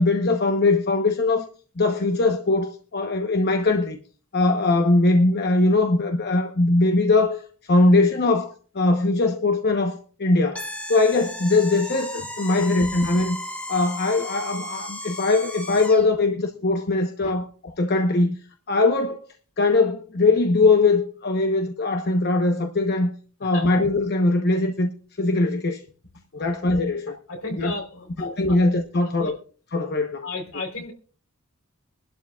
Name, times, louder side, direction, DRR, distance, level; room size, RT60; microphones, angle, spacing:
voice 1, 0.0-1.5 1.8-4.0 4.3-10.6 10.9-13.4 13.7-17.5 17.8-18.3 18.7-19.2 19.6-23.1 23.4-24.9 25.2-25.8 26.3-27.1 27.6-27.7 28.2-29.3 29.7-30.3, left 2 dB, 50° left, 1.0 m, -21 dB
sound 1, 10.6-16.1, left 1 dB, 5° left, 1.8 m, -35 dB
voice 2, 23.4-23.8 26.4-26.6 27.1-28.6 28.9-29.4 29.9-30.9, left 3 dB, 70° left, 3.7 m, -35 dB
24.0 x 12.0 x 2.4 m
head